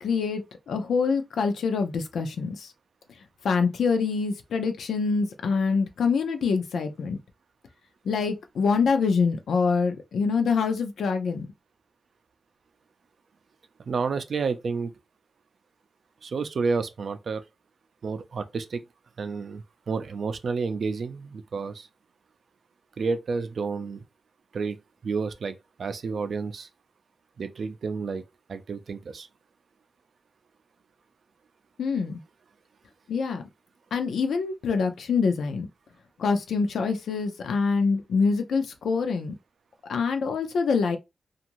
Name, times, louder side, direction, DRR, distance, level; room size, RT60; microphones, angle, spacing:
voice 1, 0.0-2.7 3.4-7.2 8.0-11.5 31.8-32.2 33.1-33.4 33.9-35.7 36.2-39.4 39.9-41.0, left 5 dB, 85° left, 0.5 m, -25 dB
voice 2, 13.8-14.9 16.2-17.4 18.0-18.8 19.2-21.9 23.0-24.0 24.5-24.8 25.0-26.7 27.4-28.2 28.5-29.3, right 4 dB, 60° right, 0.4 m, -30 dB
2.6 x 2.4 x 2.9 m
wide cardioid pair, 125°, 0 cm